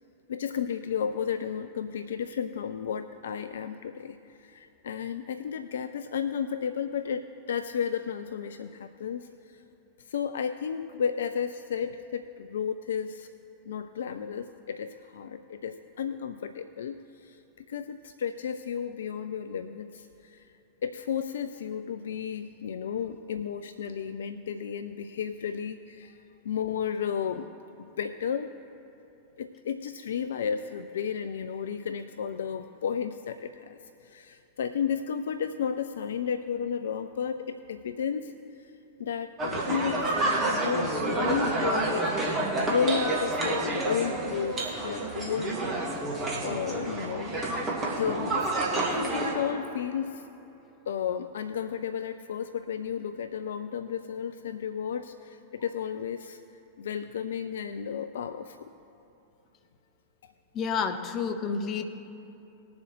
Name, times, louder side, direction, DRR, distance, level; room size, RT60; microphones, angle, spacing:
voice 1, 0.3-9.6 10.1-13.3 13.7-20.5 20.8-27.5 28.0-28.5 29.4-38.7 39.0-42.1 42.7-45.6 46.4-47.4 48.0-48.5 49.0-50.2 50.9-56.4 56.8-58.7 60.2-60.3, left 7 dB, 65° left, 10 dB, 0.4 m, -33 dB
sound 1, 39.4-49.3, right 2 dB, 25° right, 2.1 m, -29 dB
voice 2, 60.5-61.8, left 6 dB, 35° left, 7 dB, 0.8 m, -29 dB
20.0 x 7.2 x 3.1 m, 2.9 s
figure-of-eight pair, 90°, 0 cm